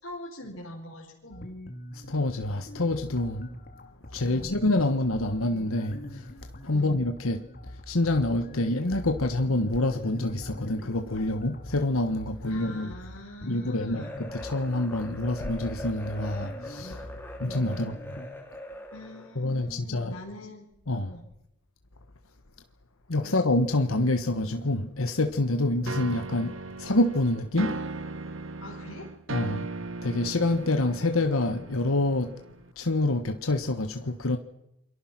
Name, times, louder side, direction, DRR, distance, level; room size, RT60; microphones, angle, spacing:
voice 1, 0.0-1.5 4.2-4.6 6.7-7.0 12.4-14.2 17.7-17.9 18.9-20.7 21.1-21.2 23.2-23.5 28.6-29.1, left 1 dB, 70° left, 4.4 m, -43 dB
sound 1, 1.3-18.3, equal, 45° left, 2.9 m, -43 dB
voice 2, 1.9-3.5 4.1-6.3 6.6-7.4 7.9-12.9 13.5-17.0 17.4-17.9 19.3-20.2 20.9-21.1 23.1-27.7 29.3-29.7 30.0-32.3 32.8-34.4, left 2 dB, 90° left, 1.4 m, -27 dB
sound 2, 13.9-19.4, left 1 dB, 10° left, 3.3 m, -41 dB
sound 3, 25.9-32.7, right 3 dB, 70° right, 1.2 m, -37 dB
28.5 x 23.5 x 6.1 m
head